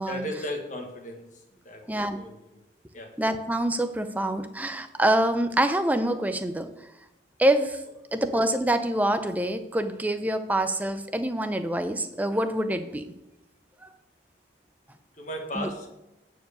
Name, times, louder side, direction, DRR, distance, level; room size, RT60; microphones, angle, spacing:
voice 1, 0.1-2.4 2.9-3.1 15.2-15.9, left 1 dB, 40° left, 2 dB, 1.4 m, -36 dB
voice 2, 3.2-6.7 7.4-7.8 8.1-13.0 15.5-15.7, right 1 dB, 10° right, 8 dB, 0.5 m, -26 dB
9.1 x 4.7 x 6.6 m, 0.91 s
head